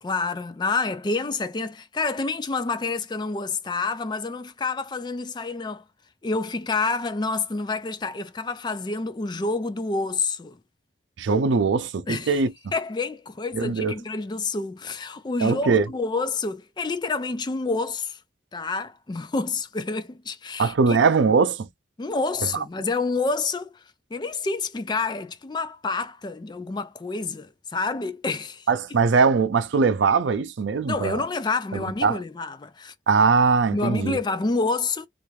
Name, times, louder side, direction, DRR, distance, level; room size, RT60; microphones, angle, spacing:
voice 1, 0.0-5.8 6.2-10.6 12.1-12.3 12.7-18.2 18.5-21.0 22.0-23.8 24.1-28.7 30.9-32.9 33.7-35.1, left 3 dB, 25° left, 0.3 m, -28 dB
voice 2, 11.2-12.5 13.5-13.9 15.4-15.8 20.6-21.7 28.7-31.2 31.7-32.2 33.1-34.2, right 5 dB, 85° right, 0.5 m, -21 dB
3.3 x 2.5 x 3.1 m
head